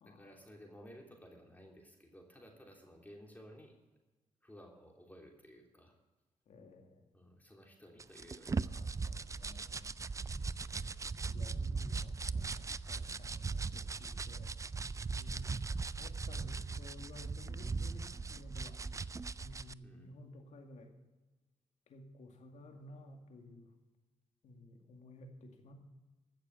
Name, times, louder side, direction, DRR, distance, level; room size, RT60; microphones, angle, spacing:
voice 1, 0.0-3.7 4.4-6.0 7.1-8.8 10.6-11.0 19.8-20.1, equal, 15° left, 0 dB, 3.2 m, -56 dB
voice 2, 6.5-7.0 8.7-9.9 11.3-14.5 15.1-18.8 19.4-20.9 21.9-23.7 24.4-25.7, left 1 dB, 70° left, 3 dB, 2.2 m, -54 dB
sound 1, 8.0-19.7, right 4 dB, 25° right, 0.4 m, -39 dB
15.5 x 6.8 x 6.9 m, 1.1 s
supercardioid pair, 60°, 12 cm